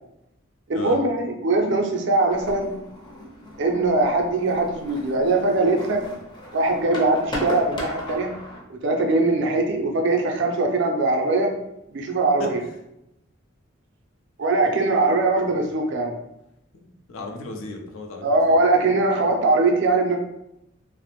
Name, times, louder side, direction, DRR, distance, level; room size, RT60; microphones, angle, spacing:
voice 1, 0.7-2.7 3.6-6.0 6.5-8.3 8.7-11.5 11.9-12.6 14.4-16.1 18.2-20.2, right 2 dB, 60° right, 3 dB, 0.4 m, -21 dB
sound 1, 2.3-8.6, left 1 dB, 25° left, 0.5 m, -36 dB
voice 2, 16.7-18.6, left 2 dB, 85° left, 3 dB, 0.5 m, -35 dB
2.4 x 2.0 x 2.9 m, 0.86 s
head